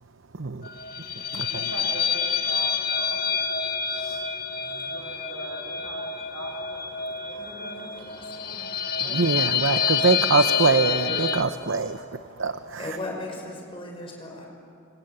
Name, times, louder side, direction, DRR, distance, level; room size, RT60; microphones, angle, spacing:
voice 1, 0.4-0.7 1.3-1.6 3.9-4.2 9.1-12.0 12.4-12.8, right 4 dB, 60° right, 9 dB, 0.8 m, -24 dB
sound 1, 0.6-11.4, left 7 dB, 45° left, 1.4 m, -28 dB
voice 2, 1.5-3.2 4.8-8.5, right 1 dB, 85° right, 0 dB, 7.7 m, -42 dB
voice 3, 4.6-5.3 7.3-11.3 12.3-12.5 12.8-14.5, left 1 dB, 25° left, 0 dB, 5.7 m, -39 dB
28.0 x 26.0 x 7.9 m, 2.5 s
head